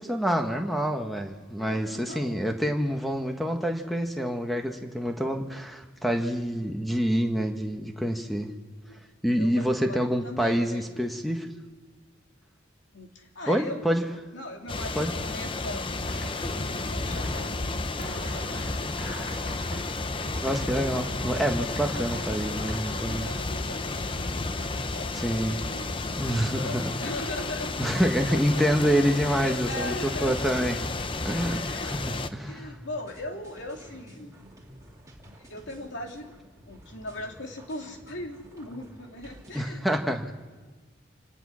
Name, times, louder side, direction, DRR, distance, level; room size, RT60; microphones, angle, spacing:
voice 1, 0.0-8.5 9.2-11.5 13.5-14.1 14.9-15.1 20.4-23.3 25.1-25.6 26.2-26.9 27.8-29.9 30.2-30.8 31.2-32.0 32.3-32.7 39.5-40.3, equal, ahead, 4 dB, 1.4 m, -27 dB
voice 2, 1.6-2.4 6.5-6.8 8.9-9.0 9.3-11.1 12.9-14.0 14.3-19.6 21.3-21.6 22.9-28.7 29.2-30.5 31.3-34.5 35.2-36.3 36.7-39.8, left 1 dB, 70° left, 2 dB, 2.6 m, -40 dB
sound 1, 14.7-32.3, left 3 dB, 25° left, 0.7 m, -32 dB
sound 2, 16.1-16.7 17.0-23.4, equal, 50° left, 4.3 m, -41 dB
sound 3, 20.9-39.6, right 1 dB, 15° right, 3.0 m, -50 dB
27.5 x 18.5 x 6.4 m, 1.3 s
head